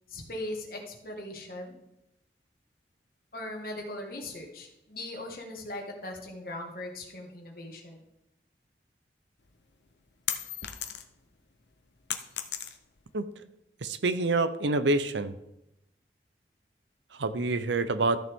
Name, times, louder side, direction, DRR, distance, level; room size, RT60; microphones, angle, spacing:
voice 1, 0.1-1.7 3.3-8.0, left 1 dB, 55° left, 1 dB, 1.8 m, -39 dB
sound 1, 9.5-11.3 11.6-13.1, left 10 dB, 75° left, 0.8 m, -35 dB
voice 2, 13.8-15.3 17.1-18.2, right 2 dB, 90° right, 12 dB, 0.7 m, -27 dB
13.5 x 6.7 x 3.6 m, 0.86 s
head